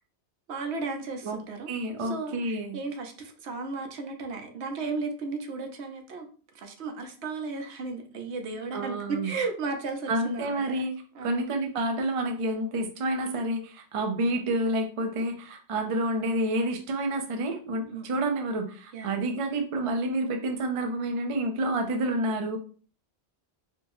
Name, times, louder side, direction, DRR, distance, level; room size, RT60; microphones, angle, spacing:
voice 1, 0.5-1.7 2.0-6.3 6.5-10.9 11.1-11.5 17.8-18.1 18.9-19.2, right 4 dB, 75° right, 0.9 m, -35 dB
voice 2, 1.7-2.8 8.7-9.3 10.1-10.9 11.2-22.6, right 1 dB, 45° right, 0.4 m, -29 dB
4.2 x 2.0 x 3.0 m
omnidirectional pair, 1.2 m